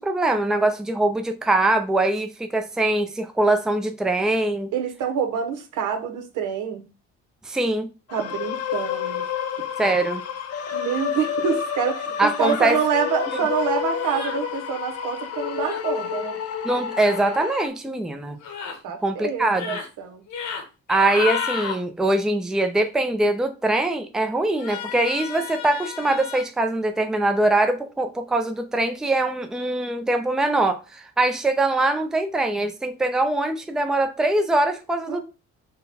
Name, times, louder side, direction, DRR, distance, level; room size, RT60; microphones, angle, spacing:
voice 1, 0.0-4.7 7.5-7.9 9.8-10.2 12.2-12.8 16.6-18.4 19.0-19.8 20.9-35.2, right 2 dB, ahead, 0.4 m, -22 dB
voice 2, 4.7-6.8 8.1-9.3 10.7-16.4 18.8-20.2 35.1-35.2, right 6 dB, 85° right, 0.9 m, -26 dB
sound 1, 8.1-17.7, left 8 dB, 50° left, 0.6 m, -30 dB
sound 2, 12.4-12.7 14.0-14.4 15.6-15.8 16.9-17.2 18.4-18.8 19.4-19.9 20.3-20.6 20.9-21.8 24.5-26.4, left 6 dB, 75° left, 1.1 m, -32 dB
3.9 x 2.2 x 4.1 m
cardioid pair, 90°, 30 cm